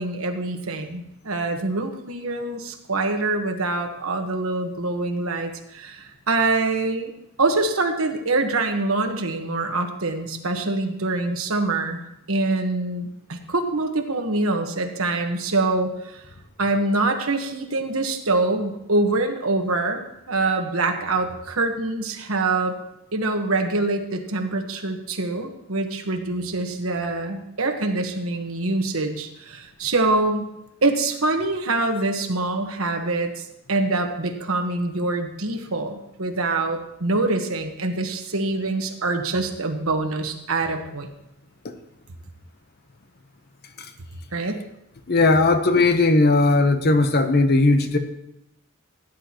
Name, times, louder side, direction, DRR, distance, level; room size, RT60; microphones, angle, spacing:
voice 1, 0.0-7.1 7.4-12.0 12.3-16.2 16.6-20.0 20.3-22.8 23.1-30.5 30.8-41.1 44.3-44.6, right 2 dB, 70° right, 5 dB, 1.3 m, -25 dB
voice 2, 45.1-48.0, left 2 dB, 45° left, 8 dB, 0.9 m, -18 dB
16.5 x 10.5 x 3.0 m, 0.84 s
head